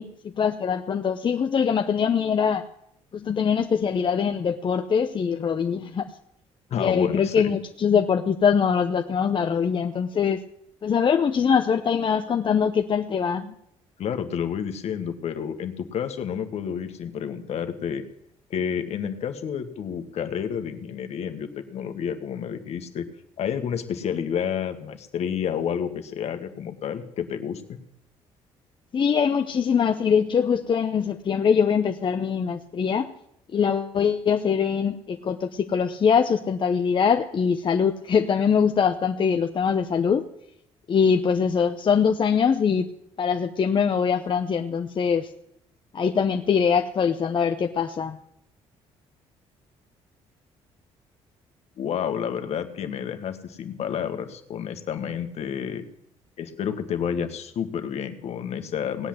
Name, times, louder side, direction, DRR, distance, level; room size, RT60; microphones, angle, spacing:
voice 1, 0.0-2.6 3.1-6.1 6.8-10.4 10.8-13.5 28.9-33.1 33.5-40.3 40.9-42.9 43.2-45.3 45.9-48.2, left 6 dB, 45° left, 6 dB, 0.9 m, -23 dB
voice 2, 6.7-7.5 14.0-18.0 18.5-23.1 23.4-27.8 51.8-55.9 56.4-59.1, left 8 dB, 65° left, 8 dB, 1.7 m, -30 dB
18.5 x 8.4 x 7.8 m, 0.78 s
supercardioid pair, 75°, 12 cm